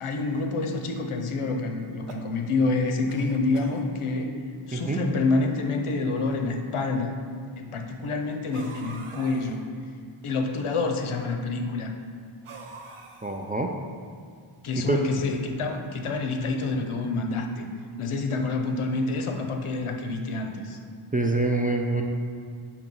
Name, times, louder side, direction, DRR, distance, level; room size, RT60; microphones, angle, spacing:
voice 1, 0.0-4.4 4.7-7.1 7.6-9.6 10.2-11.9 14.6-17.7 18.0-20.8, left 3 dB, 80° left, 4 dB, 0.7 m, -27 dB
sound 1, 1.8-2.7 3.1-3.9 4.7-4.8 5.0-5.1 6.0-6.1 8.5-9.6 12.4-13.6, right 4 dB, 85° right, 0.7 m, -44 dB
voice 2, 4.7-5.0 13.2-13.7 14.9-15.0 21.1-22.0, right 2 dB, 20° right, 1 dB, 0.3 m, -25 dB
7.2 x 2.9 x 5.3 m, 2.2 s
wide cardioid pair, 95°, 50 cm